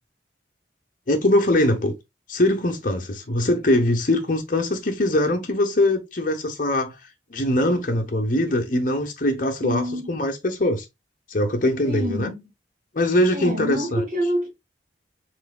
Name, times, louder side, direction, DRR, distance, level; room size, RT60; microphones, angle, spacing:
voice 1, 1.1-2.0 2.3-10.9 11.3-12.3 12.9-14.1, left 1 dB, 45° left, 1.0 m, -22 dB
voice 2, 9.6-10.1 11.8-12.5 13.3-14.5, equal, 35° right, 2.3 m, -27 dB
4.7 x 4.0 x 2.4 m
head